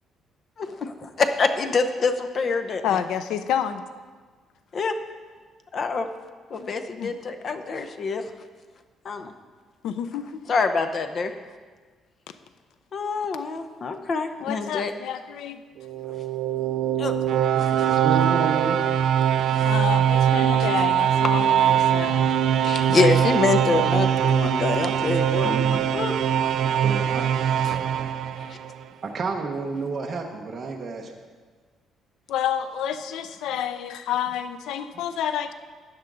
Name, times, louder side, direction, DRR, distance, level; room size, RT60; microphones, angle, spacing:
voice 1, 0.6-3.0 4.7-4.9 5.7-6.1 6.5-8.3 9.0-9.3 10.5-11.3 12.9-14.9 17.0-17.1 17.6-17.7 19.5-19.7 22.6-25.6 25.9-26.5 27.6-27.8 28.4-28.6, left 4 dB, 40° left, 8 dB, 0.7 m, -26 dB
voice 2, 2.8-3.8 7.0-7.1 9.8-10.4 14.4-15.6 19.6-22.3 25.7-26.0 27.6-27.8 32.3-35.5, left 9 dB, 85° left, 11 dB, 0.5 m, -29 dB
sound 1, 15.8-28.8, right 9 dB, 65° right, 0.3 m, -22 dB
voice 3, 17.3-18.8 25.4-25.8 26.8-27.3 27.7-27.9 29.0-31.1, right 4 dB, 35° right, 1 dB, 0.9 m, -31 dB
12.5 x 9.5 x 3.9 m, 1.5 s
cardioid pair, 145°, 0 cm